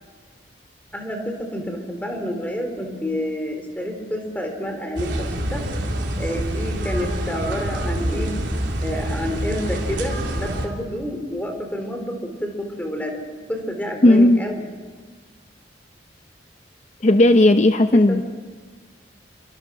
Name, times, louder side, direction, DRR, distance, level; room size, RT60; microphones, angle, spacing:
voice 1, 0.9-5.6 6.2-8.3 8.8-14.6 17.9-18.2, equal, 10° left, 3 dB, 3.9 m, -29 dB
sound 1, 5.0-10.7, right 1 dB, 75° right, 3.9 m, -26 dB
voice 2, 14.0-14.4 17.0-18.2, left 1 dB, 40° left, 8 dB, 0.7 m, -14 dB
30.0 x 25.0 x 6.2 m, 1.4 s
head